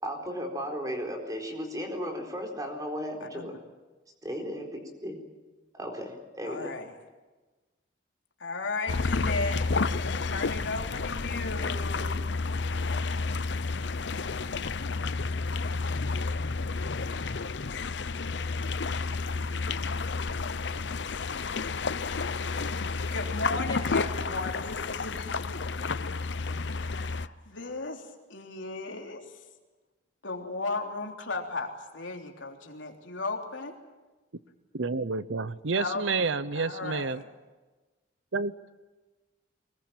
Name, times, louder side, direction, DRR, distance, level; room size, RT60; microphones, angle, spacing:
voice 1, 0.0-3.5 4.2-5.2 5.7-6.7, equal, 20° right, 3 dB, 4.2 m, -35 dB
voice 2, 6.4-6.9 8.4-9.7 9.9-12.2 23.1-25.6 26.7-29.3 30.2-33.8 35.7-37.3, left 3 dB, 80° left, 2 dB, 3.5 m, -36 dB
sound 1, 8.9-27.3, left 4 dB, 65° left, 0.7 m, -31 dB
voice 3, 34.7-37.2 38.3-38.5, right 4 dB, 80° right, 15 dB, 0.8 m, -29 dB
24.0 x 21.0 x 8.8 m, 1.2 s
head